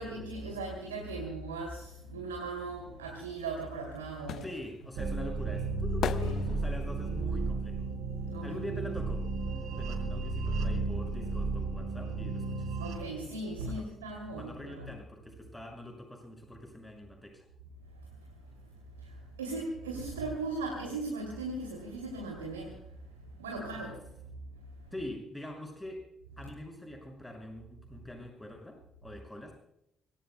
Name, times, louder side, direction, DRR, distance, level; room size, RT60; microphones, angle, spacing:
voice 1, 0.0-4.5 6.2-6.4 8.3-8.6 12.8-14.9 19.0-19.1 19.4-22.8 23.4-24.0, right 3 dB, 85° right, 1 dB, 2.7 m, -38 dB
sound 1, 3.4-9.3 9.5-11.1 11.4-11.5, left 9 dB, 60° left, 0.7 m, -40 dB
voice 2, 4.4-7.9 8.4-9.2 9.8-12.7 13.7-13.9 14.4-17.4 24.9-26.0 26.4-29.5, left 1 dB, 10° left, 2 dB, 5.8 m, -44 dB
sound 2, 5.0-13.0, right 3 dB, 65° right, 4.8 m, -33 dB
25.0 x 20.0 x 2.2 m, 0.78 s
hypercardioid pair, 45°, 0 cm